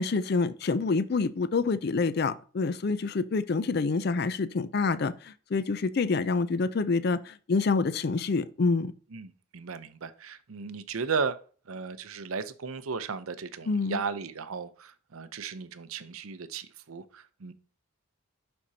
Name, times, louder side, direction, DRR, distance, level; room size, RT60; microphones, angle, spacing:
voice 1, 0.0-8.9 13.7-14.0, left 4 dB, 50° left, 0.4 m, -27 dB
voice 2, 9.1-11.4 11.7-17.5, right 5 dB, 85° right, 0.6 m, -35 dB
11.0 x 4.3 x 2.8 m
head